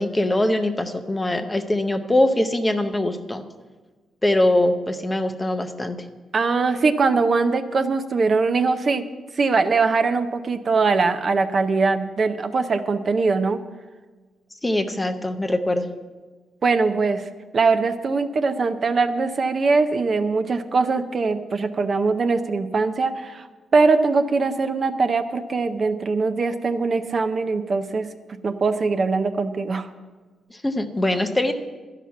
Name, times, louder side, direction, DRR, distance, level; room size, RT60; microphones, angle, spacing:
voice 1, 0.0-3.4 4.2-6.0 14.6-15.9 30.6-31.5, left 1 dB, 10° left, 7 dB, 0.6 m, -22 dB
voice 2, 6.3-9.0 9.4-13.6 16.6-23.5 23.7-28.1 28.4-29.9, right 4 dB, 30° right, 8 dB, 0.5 m, -21 dB
12.5 x 5.8 x 9.4 m, 1.3 s
wide cardioid pair, 175°, 0 cm